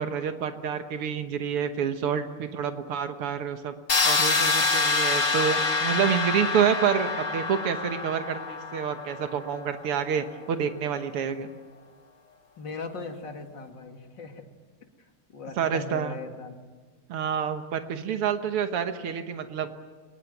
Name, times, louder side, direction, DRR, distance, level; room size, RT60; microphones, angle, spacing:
voice 1, 0.0-3.8 4.0-11.5 15.6-16.1 17.1-19.7, right 8 dB, 90° right, 7 dB, 2.2 m, -28 dB
voice 2, 2.4-2.8 6.3-6.5 12.6-14.5 15.0-16.6, left 4 dB, 55° left, 4 dB, 3.0 m, -39 dB
sound 1, 3.9-9.7, left 4 dB, 40° left, 1.9 m, -26 dB
24.5 x 20.0 x 9.3 m, 1.5 s
omnidirectional pair, 2.4 m